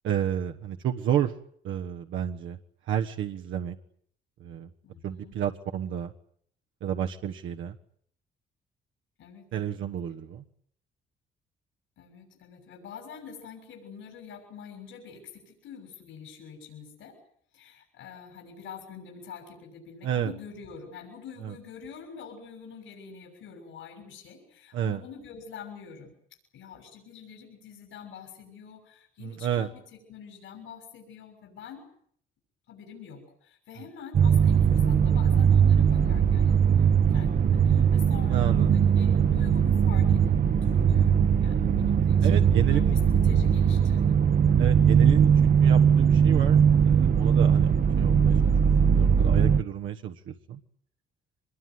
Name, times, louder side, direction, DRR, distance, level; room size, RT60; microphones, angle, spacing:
voice 1, 0.0-1.3 1.6-2.6 2.9-3.8 4.4-4.7 5.0-6.1 6.8-7.7 9.5-10.4 20.0-20.3 21.4-21.5 24.7-25.0 29.4-29.7 38.3-38.7 42.2-43.0 44.6-46.6 46.8-47.7 48.0-50.6, right 10 dB, 80° right, 3 dB, 1.4 m, -30 dB
voice 2, 4.8-5.3 9.2-9.5 12.0-17.2 17.5-26.1 26.5-31.8 32.7-40.3 40.6-44.2, left 6 dB, 80° left, 3 dB, 6.6 m, -46 dB
sound 1, 34.1-49.6, right 7 dB, 45° right, 1.0 m, -20 dB
24.5 x 21.5 x 9.4 m, 0.65 s
cardioid pair, 90°, 20 cm